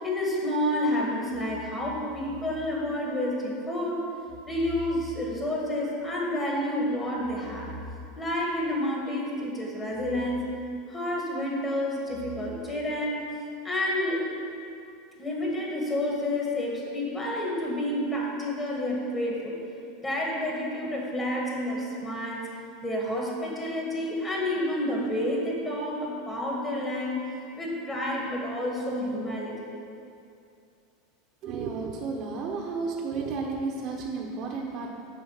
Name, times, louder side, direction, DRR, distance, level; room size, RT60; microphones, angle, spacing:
voice 1, 0.0-4.1 4.5-7.7 8.2-10.5 10.9-13.2 13.6-14.3 15.2-19.6 20.0-22.4 22.8-27.2 27.6-29.6, left 1 dB, 20° left, -3 dB, 1.6 m, -29 dB
voice 2, 31.4-34.9, right 4 dB, 40° right, -1 dB, 0.8 m, -32 dB
7.0 x 5.0 x 6.5 m, 2.5 s
supercardioid pair, 135°, 0 cm